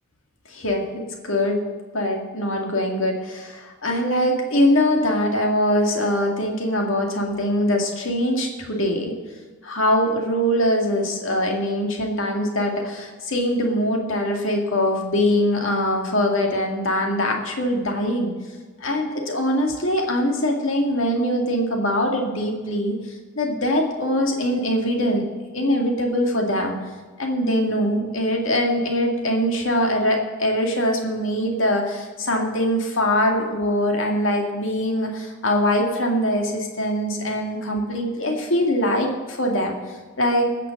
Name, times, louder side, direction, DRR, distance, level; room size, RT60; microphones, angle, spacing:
voice 1, 0.5-1.6 1.9-9.1 9.6-18.3 18.8-22.9 23.4-25.2 25.5-26.8 27.2-39.8 40.2-40.5, left 1 dB, 70° left, 2 dB, 2.1 m, -22 dB
18.0 x 6.8 x 6.5 m, 1.4 s
head